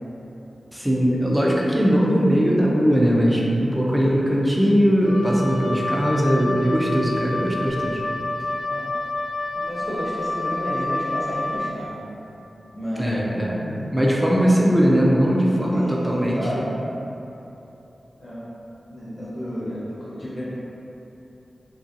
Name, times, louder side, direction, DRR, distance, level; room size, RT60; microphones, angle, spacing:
voice 1, 0.7-8.0 13.0-13.6 13.9-16.7, equal, 5° right, -4 dB, 0.4 m, -20 dB
Wind instrument woodwind instrument, 5.0-11.7, left 2 dB, 75° left, 0.5 m, -28 dB
voice 2, 9.5-12.0 12.7-13.2 13.6-13.9 15.7-16.7 18.2-18.4 18.9-20.4, equal, 25° left, -9 dB, 0.7 m, -32 dB
2.9 x 2.6 x 2.5 m, 2.9 s
wide cardioid pair, 125°, 0 cm